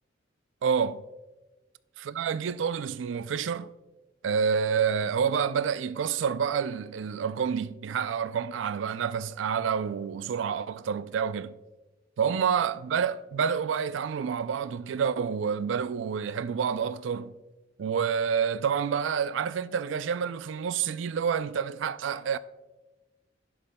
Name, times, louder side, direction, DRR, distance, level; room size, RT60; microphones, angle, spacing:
voice 1, 0.6-1.0 2.0-3.7 4.2-11.6 12.2-17.4 17.8-22.4, right 7 dB, 75° right, 0.3 m, -28 dB
11.0 x 11.0 x 2.2 m
head